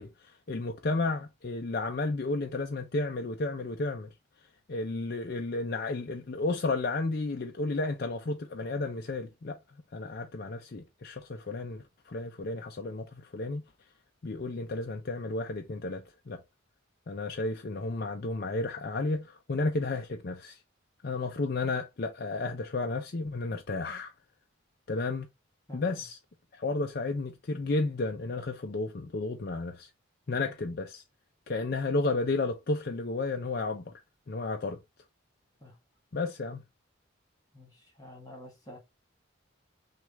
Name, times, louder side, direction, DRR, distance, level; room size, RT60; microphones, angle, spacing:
voice 1, 0.0-4.1 4.7-9.6 9.9-13.6 14.2-16.4 17.1-20.6 21.0-24.1 24.9-25.3 25.7-26.2 26.5-29.9 30.3-31.0 31.5-33.9 34.3-34.8 36.1-36.6, left 3 dB, 50° left, 0.5 m, -32 dB
voice 2, 25.7-26.1 30.4-30.5 35.6-35.8 37.5-38.8, left 1 dB, 20° left, 1.8 m, -49 dB
6.2 x 2.4 x 3.1 m
head